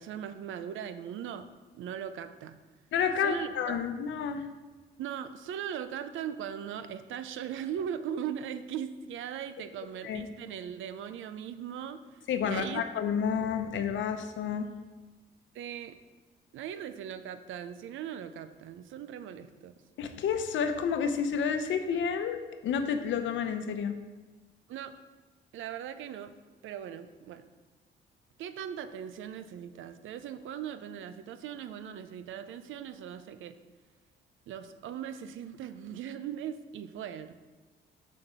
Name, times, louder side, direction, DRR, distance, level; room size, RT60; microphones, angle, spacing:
voice 1, 0.0-1.5 1.7-2.6 3.2-3.8 5.0-12.0 12.4-12.8 15.5-16.0 16.5-19.8 24.7-25.0 25.5-26.3 26.6-27.4 28.4-33.6 34.5-37.5, right 9 dB, 80° right, 11 dB, 0.6 m, -39 dB
voice 2, 2.9-4.5 10.0-10.3 12.3-14.7 20.0-24.0, left 7 dB, 70° left, 8 dB, 0.8 m, -30 dB
7.2 x 4.3 x 6.7 m, 1.3 s
cardioid pair, 90°, 20 cm